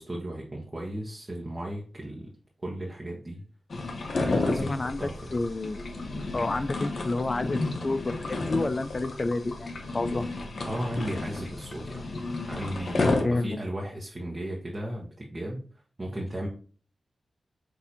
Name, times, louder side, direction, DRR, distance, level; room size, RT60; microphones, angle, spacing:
voice 1, 0.0-2.3 2.6-3.4 4.1-5.1 10.7-12.0 12.5-15.6 16.0-16.5, right 1 dB, 30° right, -3 dB, 1.0 m, -35 dB
sound 1, 3.7-13.2, left 3 dB, 60° left, 0.8 m, -32 dB
voice 2, 4.2-5.9 6.3-10.3 13.2-13.6, left 2 dB, 35° left, 12 dB, 0.4 m, -30 dB
6.2 x 2.7 x 2.8 m, 0.42 s
cardioid pair, 70°, 0 cm